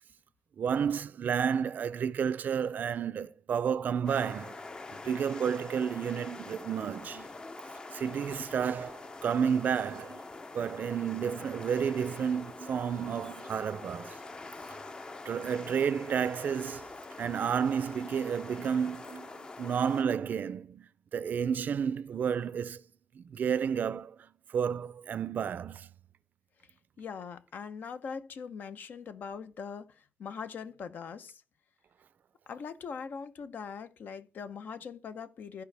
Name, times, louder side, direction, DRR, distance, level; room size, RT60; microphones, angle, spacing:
voice 1, 0.6-4.6 5.0-7.3 7.9-10.2 10.5-14.2 15.3-16.9 17.2-22.8 23.1-25.9, right 7 dB, 65° right, 0.4 m, -31 dB
sound 1, 4.1-20.0, left 3 dB, 25° left, 0.5 m, -45 dB
voice 2, 27.0-31.4 32.5-35.6, left 6 dB, 75° left, 0.8 m, -41 dB
15.0 x 4.9 x 3.4 m
wide cardioid pair, 145°, 3 cm